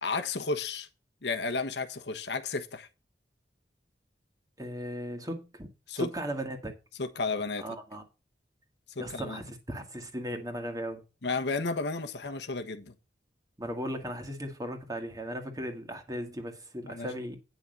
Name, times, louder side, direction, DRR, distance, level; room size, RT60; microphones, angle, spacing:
voice 1, 0.0-0.9 1.2-2.9 5.9-6.1 7.0-7.6 8.9-9.4 11.2-12.9 16.8-17.1, left 3 dB, 75° left, 1.2 m, -32 dB
voice 2, 4.6-5.7 5.9-6.7 7.6-8.0 9.0-11.0 13.6-17.4, equal, 20° right, 1.8 m, -37 dB
9.6 x 5.9 x 5.3 m
head